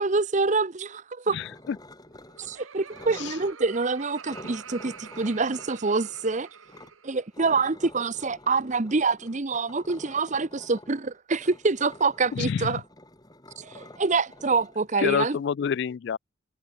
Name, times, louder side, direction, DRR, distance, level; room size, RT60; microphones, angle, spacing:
voice 1, 0.0-1.4 2.4-6.5 7.0-12.8 13.6-15.4, right 4 dB, 35° right, 0.8 m, -26 dB
voice 2, 1.3-1.8 3.2-3.3 12.3-12.8 15.0-16.2, left 7 dB, 55° left, 0.3 m, -28 dB
sound 1, 1.4-2.6 2.9-3.5 4.2-6.9 7.3-15.4, left 1 dB, 20° left, 5.3 m, -48 dB
Laughter, 2.1-7.3, right 6 dB, 80° right, 1.6 m, -46 dB
head